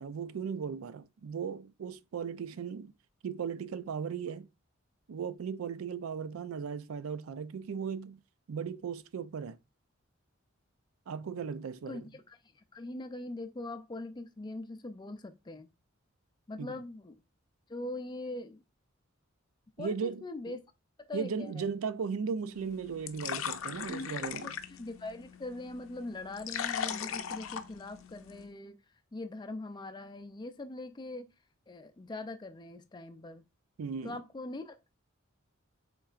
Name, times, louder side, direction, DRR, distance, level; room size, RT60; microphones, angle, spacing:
voice 1, 0.0-2.9 3.2-4.5 5.1-8.2 8.5-9.6 11.1-12.1 16.6-16.8 19.8-20.6 21.1-24.5 33.8-34.2, right 6 dB, 90° right, 0.4 m, -37 dB
voice 2, 11.9-15.7 16.5-17.2 17.7-18.6 19.8-20.6 21.0-21.7 23.9-28.8 29.1-31.3 31.7-33.4 34.0-34.9, left 2 dB, 20° left, 0.4 m, -42 dB
sound 1, 22.5-28.5, left 8 dB, 75° left, 0.5 m, -39 dB
5.6 x 3.9 x 2.4 m
head